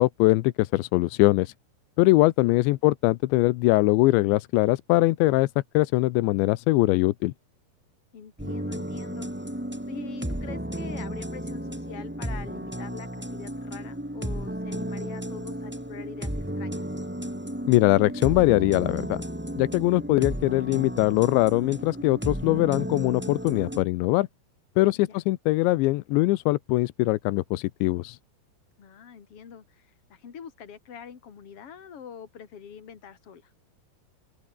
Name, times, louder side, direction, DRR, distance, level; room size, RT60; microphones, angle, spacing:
voice 1, 0.0-1.5 2.0-5.5 5.7-7.3 17.7-19.2 19.6-24.3 24.8-28.2, left 19 dB, 90° left, 3.1 m, -22 dB
voice 2, 8.1-9.3 9.9-16.8 24.9-25.2 28.8-33.5, left 7 dB, 35° left, 3.1 m, -44 dB
sound 1, 8.4-23.8, equal, 5° right, 2.1 m, -33 dB
open air
omnidirectional pair, 5.1 m